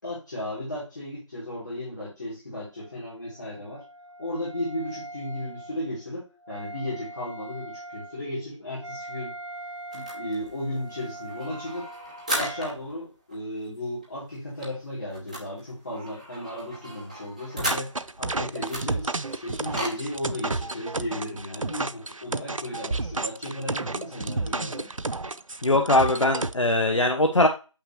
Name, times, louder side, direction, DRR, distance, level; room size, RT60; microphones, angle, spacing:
voice 1, 0.0-3.8 4.2-9.3 9.9-11.9 12.3-17.9 18.2-24.9, left 1 dB, 35° left, -8 dB, 3.1 m, -35 dB
Wind instrument woodwind instrument, 2.7-12.8, right 1 dB, 65° right, 2.2 m, -42 dB
sound 1, 9.9-12.9 13.3-13.4 13.7-13.8 14.0-18.2 18.6-20.0, right 1 dB, 15° right, 0.9 m, -36 dB
sound 2, 17.6-26.5, right 3 dB, 85° right, 0.6 m, -31 dB
voice 2, 25.6-27.5, left 2 dB, 70° left, 4 dB, 1.0 m, -21 dB
6.9 x 5.9 x 3.1 m, 0.31 s
figure-of-eight pair, 165°, 16 cm